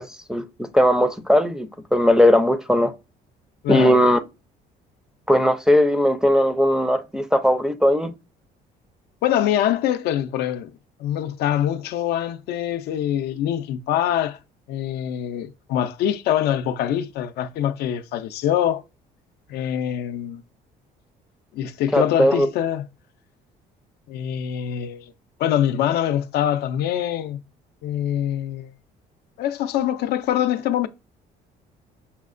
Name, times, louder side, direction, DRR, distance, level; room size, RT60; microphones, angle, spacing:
voice 1, 0.0-2.9 3.7-4.2 5.3-8.1 21.9-22.5, equal, 5° right, 0.4 m, -18 dB
voice 2, 3.6-4.0 9.2-10.7 11.0-14.4 14.7-18.8 19.5-20.4 21.5-22.8 24.1-25.1 25.4-27.4 27.8-28.7 29.4-30.9, left 10 dB, 75° left, 0.4 m, -24 dB
5.5 x 2.1 x 2.4 m
cardioid pair, 110°, 17 cm